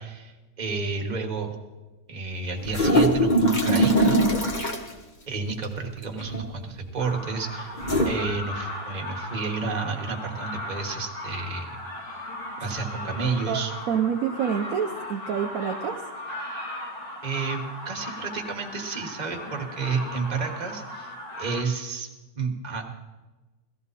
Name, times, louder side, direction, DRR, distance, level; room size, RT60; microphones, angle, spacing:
voice 1, 0.0-1.5 2.1-4.2 5.3-11.8 12.6-13.7 17.2-22.1 22.3-22.9, right 4 dB, 25° right, 2 dB, 1.1 m, -31 dB
sound 1, 2.6-4.9 6.2-6.6 7.8-8.1, equal, 30° left, 0.9 m, -21 dB
sound 2, 7.0-21.6, left 1 dB, 70° left, 3.6 m, -37 dB
voice 2, 13.5-16.0, right 8 dB, 75° right, 4 dB, 0.7 m, -27 dB
17.0 x 14.0 x 4.1 m, 1.2 s
omnidirectional pair, 2.3 m